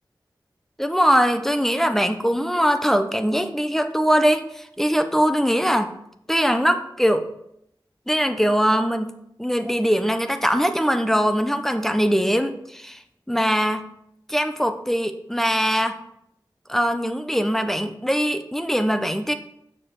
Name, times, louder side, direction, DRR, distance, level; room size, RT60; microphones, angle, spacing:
voice 1, 0.8-5.9 6.3-7.3 8.1-13.0 13.3-13.9 14.3-16.0 16.7-19.3, equal, 5° left, 8 dB, 0.9 m, -21 dB
7.8 x 6.7 x 4.9 m, 0.77 s
wide cardioid pair, 45°, 8 cm